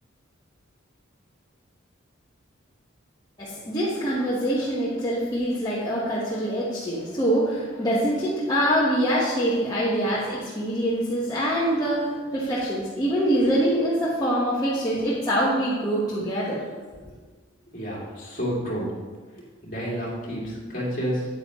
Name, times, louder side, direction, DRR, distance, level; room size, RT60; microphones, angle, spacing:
voice 1, 3.4-16.6, equal, 20° left, -8 dB, 1.2 m, -24 dB
voice 2, 17.7-18.9 19.6-21.3, equal, 40° left, -5 dB, 2.5 m, -30 dB
9.1 x 9.1 x 3.1 m, 1.4 s
head